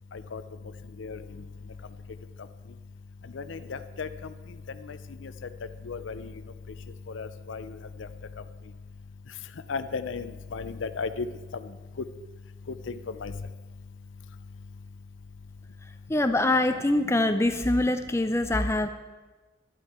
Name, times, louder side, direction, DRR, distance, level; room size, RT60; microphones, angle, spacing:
voice 1, 3.3-4.1 4.9-5.0 5.2-5.3 5.9-6.3 7.1-7.7 9.7-11.3 12.9-13.3, left 4 dB, 75° left, 12 dB, 0.5 m, -34 dB
voice 2, 16.1-18.9, left 1 dB, 15° left, 8 dB, 0.5 m, -24 dB
11.5 x 11.0 x 4.3 m, 1.2 s
head